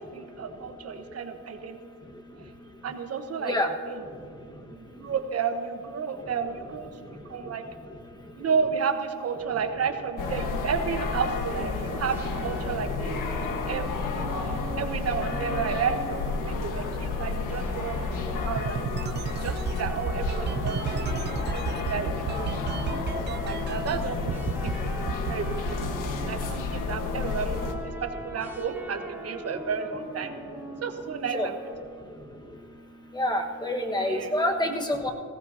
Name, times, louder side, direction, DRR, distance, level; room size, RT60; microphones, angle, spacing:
voice 1, 0.0-1.8 2.8-3.6 3.8-4.0 4.5-7.6 8.4-18.9 19.4-21.1 21.5-22.6 23.1-24.7 25.3-30.3 30.8-31.6 34.0-34.4, right 6 dB, 50° right, 7 dB, 1.1 m, -32 dB
sound 1, 10.2-27.7, left 4 dB, 80° left, 1.4 m, -31 dB
sound 2, 11.9-17.0 17.4-31.7, equal, 5° right, 1.0 m, -42 dB
sound 3, 18.6-24.0 24.3-24.7 25.1-26.5, right 8 dB, 35° right, 0.4 m, -33 dB
voice 2, 33.1-35.1, left 1 dB, 15° left, 2 dB, 1.4 m, -27 dB
19.0 x 16.0 x 2.8 m, 2.3 s
cardioid pair, 110°, 32 cm